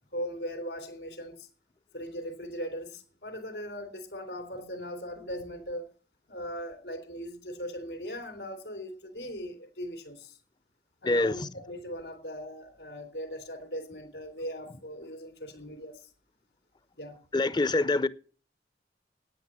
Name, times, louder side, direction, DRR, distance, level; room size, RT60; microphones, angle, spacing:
voice 1, 0.1-1.5 1.9-5.9 6.3-10.4 11.0-16.1 17.0-17.2, equal, 75° left, 3.3 m, -39 dB
voice 2, 11.0-11.4 17.3-18.1, left 2 dB, 25° left, 0.6 m, -25 dB
9.9 x 9.3 x 7.3 m
head